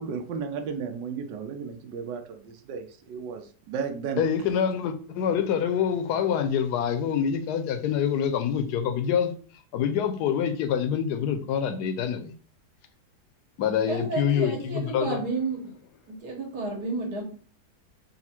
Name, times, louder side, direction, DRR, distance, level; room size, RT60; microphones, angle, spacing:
voice 1, 0.0-4.2, right 6 dB, 80° right, 1.3 m, -34 dB
voice 2, 4.2-9.3 9.7-12.3 13.6-15.2, left 8 dB, 75° left, 1.1 m, -26 dB
voice 3, 13.9-15.7 16.1-17.2, right 3 dB, 65° right, 1.7 m, -31 dB
4.1 x 2.4 x 4.2 m
omnidirectional pair, 1.9 m